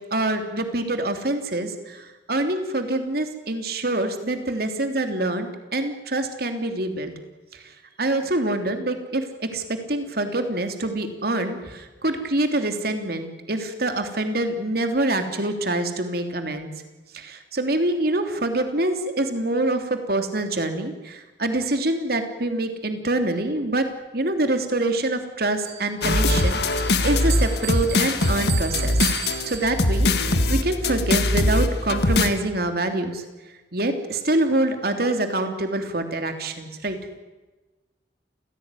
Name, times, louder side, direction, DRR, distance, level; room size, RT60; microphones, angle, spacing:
voice 1, 0.1-7.1 8.0-16.7 17.1-23.9 24.1-29.0 29.5-33.2 33.7-37.0, right 2 dB, 55° right, 6 dB, 3.2 m, -25 dB
Bell, 25.7-30.2, right 11 dB, 80° right, 4.8 m, -36 dB
sound 1, 26.0-32.3, left 2 dB, 60° left, 1.8 m, -21 dB
29.0 x 17.0 x 9.9 m, 1.2 s
head